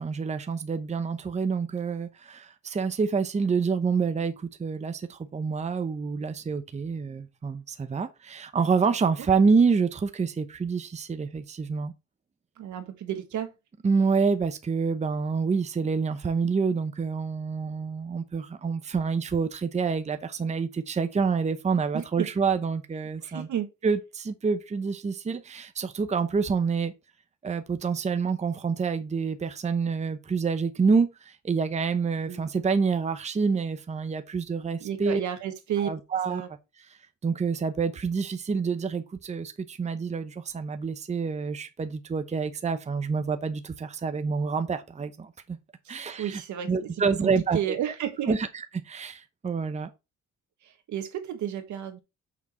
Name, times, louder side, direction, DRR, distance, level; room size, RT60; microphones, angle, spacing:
voice 1, 0.0-11.9 13.8-23.5 23.8-26.9 27.4-35.2 35.8-36.5 37.2-45.6 45.9-46.4 46.7-47.6 48.3-49.9, right 5 dB, 25° right, 0.7 m, -27 dB
voice 2, 12.6-13.5 21.9-22.3 23.2-23.7 32.3-32.5 34.8-35.9 36.3-36.5 45.8-46.9 47.2-48.4 50.6-52.0, right 10 dB, 75° right, 1.5 m, -32 dB
6.1 x 4.5 x 4.2 m
cardioid pair, 90°, 30 cm